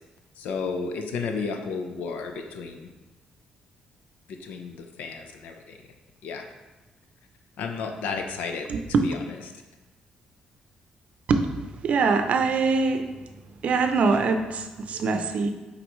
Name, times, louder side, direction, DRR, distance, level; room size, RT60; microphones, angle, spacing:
voice 1, 0.4-2.9 4.3-5.8 6.2-6.4 7.6-8.7 9.0-9.2, left 5 dB, 85° left, 5 dB, 0.7 m, -32 dB
voice 2, 8.7-9.1 11.3-11.5 11.8-13.0 13.6-15.5, right 4 dB, 55° right, 7 dB, 0.6 m, -23 dB
7.9 x 3.8 x 3.1 m, 1.1 s
cardioid pair, 105°, 3 cm